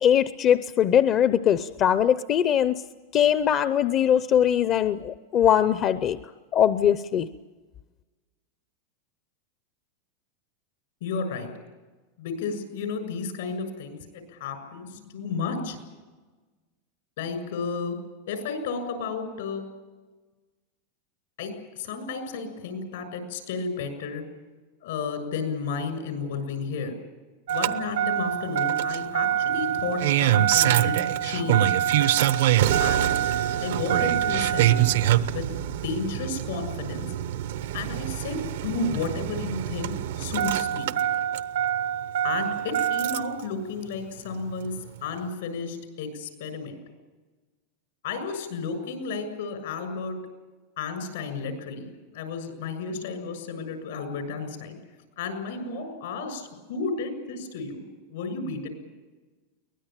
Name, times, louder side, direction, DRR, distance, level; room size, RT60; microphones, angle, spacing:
voice 1, 0.0-2.8 3.1-6.2 6.5-7.3, left 9 dB, 35° left, 13 dB, 0.7 m, -21 dB
voice 2, 11.0-11.5 12.2-15.8 17.2-18.0 18.3-19.6 21.4-24.2 24.8-26.9 27.5-31.7 32.8-33.1 33.6-34.9 35.3-37.1 37.7-40.9 42.2-44.8 45.0-46.8 48.0-50.2 50.8-54.8 55.2-57.8 58.1-58.7, left 4 dB, 80° left, 8 dB, 6.8 m, -32 dB
Engine starting, 27.5-43.4 44.7-44.8, right 11 dB, 80° right, 0.8 m, -25 dB
23.0 x 19.5 x 9.0 m, 1.3 s
supercardioid pair, 140°, 0 cm